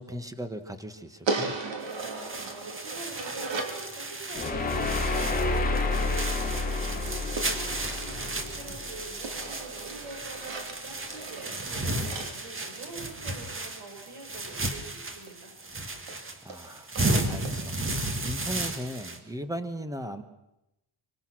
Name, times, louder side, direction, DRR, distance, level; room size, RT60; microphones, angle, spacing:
voice 1, 0.0-1.5 16.4-16.9 17.2-17.8 18.2-20.2, equal, 5° right, 10 dB, 1.4 m, -37 dB
sound 1, 1.3-3.8 7.4-8.8 9.2-13.4 15.3-15.4 15.6-15.7 16.1-16.2 16.5-16.6 17.0-17.1 17.4-17.6, right 3 dB, 60° right, 3.4 m, -37 dB
sound 2, 1.8-19.2, right 2 dB, 25° right, 1.9 m, -34 dB
voice 2, 2.0-7.8 8.3-15.5, right 4 dB, 75° right, 1 dB, 7.4 m, -44 dB
sound 3, 4.3-9.4, left 3 dB, 15° left, 2.7 m, -30 dB
25.0 x 23.5 x 6.3 m, 0.92 s
cardioid pair, 155°, 49 cm